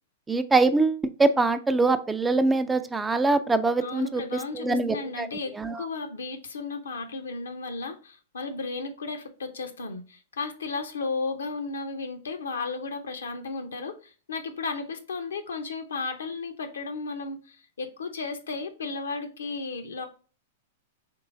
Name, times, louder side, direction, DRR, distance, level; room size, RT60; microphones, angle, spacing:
voice 1, 0.3-4.2 4.5-5.3 5.6-5.8, right 3 dB, 10° right, 0.3 m, -23 dB
voice 2, 3.8-20.1, left 4 dB, 80° left, 0.7 m, -34 dB
3.8 x 3.0 x 3.7 m
hypercardioid pair, 110°, 0 cm